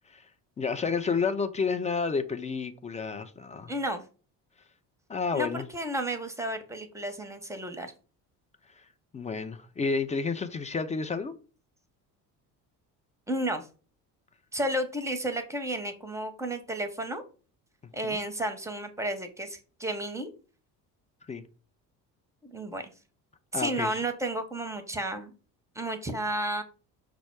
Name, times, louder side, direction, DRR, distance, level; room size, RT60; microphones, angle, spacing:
voice 1, 0.6-3.7 5.1-5.7 9.1-11.3 18.0-18.2 21.3-21.4 23.5-24.0, left 5 dB, 15° left, 0.4 m, -30 dB
voice 2, 3.7-4.0 5.3-7.9 13.3-13.7 14.5-17.2 17.9-20.3 22.4-22.9 23.5-25.3 25.7-26.6, right 1 dB, 5° right, 0.8 m, -32 dB
5.8 x 2.0 x 4.5 m
hypercardioid pair, 55°, 49 cm